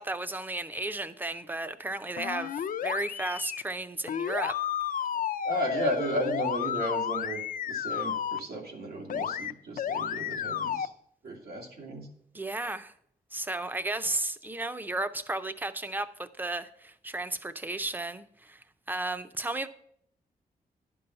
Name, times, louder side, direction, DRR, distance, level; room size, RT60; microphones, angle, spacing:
voice 1, 0.0-4.6 12.3-12.9 13.3-19.7, right 2 dB, 10° right, 0.5 m, -34 dB
sound 1, 2.2-3.6 4.1-8.4 9.1-9.5 9.8-10.9, left 9 dB, 60° left, 0.4 m, -32 dB
voice 2, 5.4-10.9 11.2-12.1, right 1 dB, 90° right, 2.2 m, -34 dB
11.0 x 5.4 x 5.6 m
wide cardioid pair, 145°, 16 cm